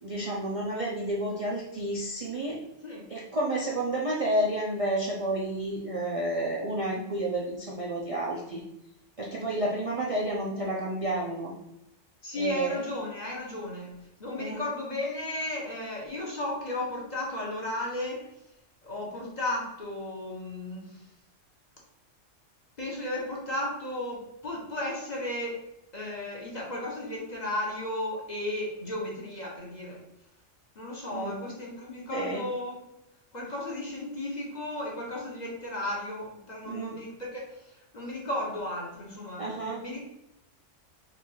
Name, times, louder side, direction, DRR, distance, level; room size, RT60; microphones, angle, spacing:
voice 1, 0.0-2.6 3.1-8.6 9.2-11.5 12.3-12.8 14.4-14.6 31.1-31.4 32.1-32.4 36.6-37.0 39.4-39.8, right 1 dB, 40° right, -4 dB, 0.5 m, -30 dB
voice 2, 2.8-3.1 12.2-18.3 18.8-21.0 22.8-25.6 25.9-30.0 30.7-32.7 33.3-40.0, left 1 dB, 35° left, -3 dB, 1.0 m, -34 dB
4.0 x 2.5 x 4.5 m, 0.86 s
omnidirectional pair, 1.3 m